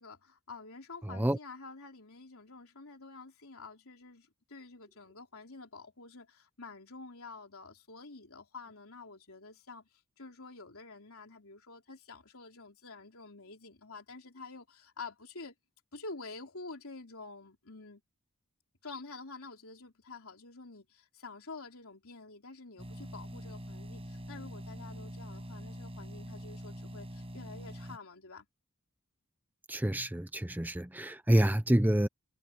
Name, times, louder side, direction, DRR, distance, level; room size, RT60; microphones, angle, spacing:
voice 1, 0.0-9.9 10.2-15.5 15.9-18.0 18.8-28.5, left 3 dB, 65° left, 4.1 m, -48 dB
sound 1, 22.8-28.0, equal, 25° right, 7.2 m, -44 dB
voice 2, 29.7-32.1, right 1 dB, 10° right, 0.7 m, -27 dB
head